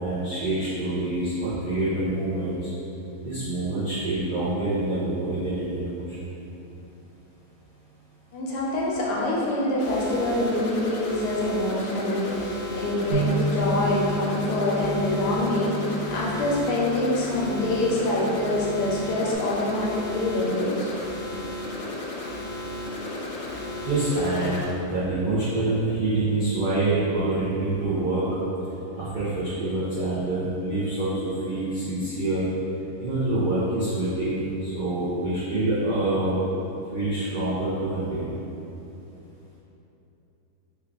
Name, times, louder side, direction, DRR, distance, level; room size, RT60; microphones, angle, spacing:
voice 1, 0.0-2.7 3.2-6.2 23.3-23.5 23.8-28.2 29.0-32.4 33.0-36.3 36.9-38.2, right 2 dB, 75° right, -11 dB, 0.4 m, -26 dB
voice 2, 8.3-20.9, left 1 dB, 85° left, -4 dB, 1.2 m, -25 dB
sound 1, 9.8-24.6, left 1 dB, 70° left, 0.7 m, -34 dB
Bass guitar, 13.1-19.4, right 1 dB, 60° right, 1.0 m, -32 dB
3.4 x 2.3 x 3.5 m, 3.0 s
omnidirectional pair, 1.7 m